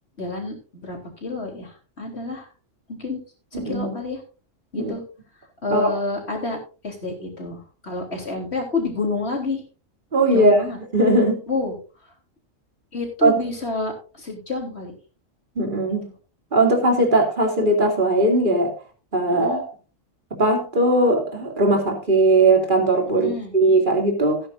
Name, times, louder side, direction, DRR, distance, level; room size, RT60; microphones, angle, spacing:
voice 1, 0.2-2.5 2.9-3.2 3.5-4.2 4.7-5.0 5.6-6.6 6.8-9.6 10.3-10.8 11.5-11.8 12.9-14.9 19.3-19.6 23.1-23.5, left 3 dB, 55° left, 2 dB, 4.0 m, -29 dB
voice 2, 3.5-3.9 4.8-4.9 5.7-5.9 10.1-10.6 10.9-11.4 13.2-13.4 15.6-16.1 16.5-18.7 19.1-19.6 20.3-24.4, right 2 dB, 40° right, 3 dB, 2.8 m, -19 dB
17.0 x 9.9 x 2.6 m, 0.35 s
omnidirectional pair, 1.3 m